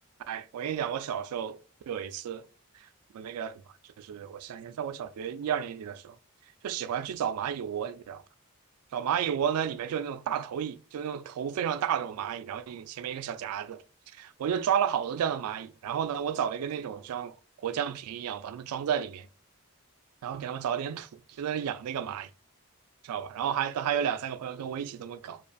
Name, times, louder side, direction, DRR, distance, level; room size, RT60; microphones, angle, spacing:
voice 1, 0.3-1.6 1.9-2.4 3.1-3.6 4.0-6.2 6.6-8.2 8.9-13.8 14.2-17.3 17.6-19.3 20.2-21.1 21.4-22.3 23.0-25.4, right 8 dB, 85° right, 0.3 m, -32 dB
2.5 x 2.4 x 2.2 m
head